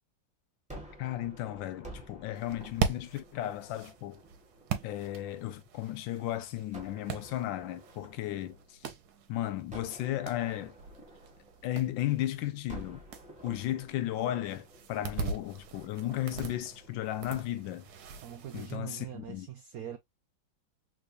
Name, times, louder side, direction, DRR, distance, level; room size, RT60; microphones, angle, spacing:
Gunshot gunfire, 0.7-5.8 6.7-9.1 9.7-12.2 12.7-17.9, right 1 dB, 5° right, 0.7 m, -52 dB
voice 1, 1.0-4.2 4.8-8.8 9.3-10.7 11.6-13.0 13.4-17.8 18.5-19.5, left 13 dB, 80° left, 1.3 m, -35 dB
sound 1, 2.3-18.8, right 6 dB, 65° right, 1.1 m, -41 dB
voice 2, 18.2-20.0, right 10 dB, 90° right, 0.8 m, -42 dB
3.4 x 3.2 x 2.4 m
omnidirectional pair, 2.1 m